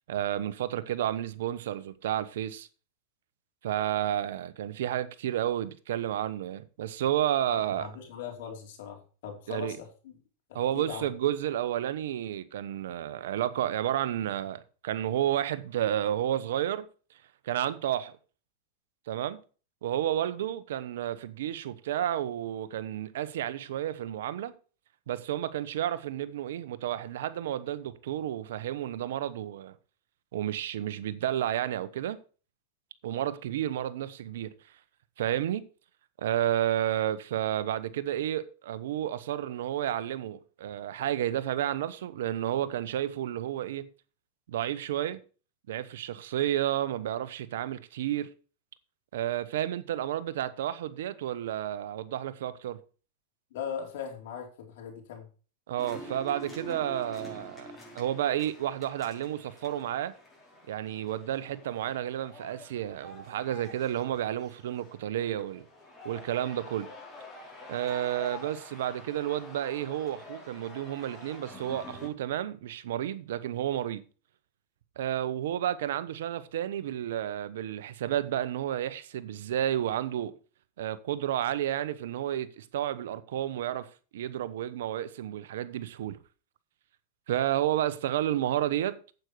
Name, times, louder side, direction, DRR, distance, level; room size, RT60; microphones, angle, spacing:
voice 1, 0.1-2.7 3.6-7.9 9.5-9.8 10.5-16.9 17.4-18.2 19.1-19.4 19.8-24.5 25.1-29.7 30.3-32.2 33.0-34.5 35.2-35.6 36.2-43.9 44.5-45.2 45.7-48.3 49.1-52.8 55.7-60.1 60.7-65.7 66.0-66.9 67.7-74.0 75.0-80.3 80.8-86.2 87.3-89.0, right 11 dB, 80° right, 1.0 m, -31 dB
voice 2, 7.5-10.1 10.5-11.1 53.5-55.3, left 7 dB, 70° left, 4.3 m, -40 dB
sound 1, 55.8-72.1, left 1 dB, 15° left, 5.4 m, -47 dB
9.0 x 8.2 x 4.8 m
hypercardioid pair, 120°, 0 cm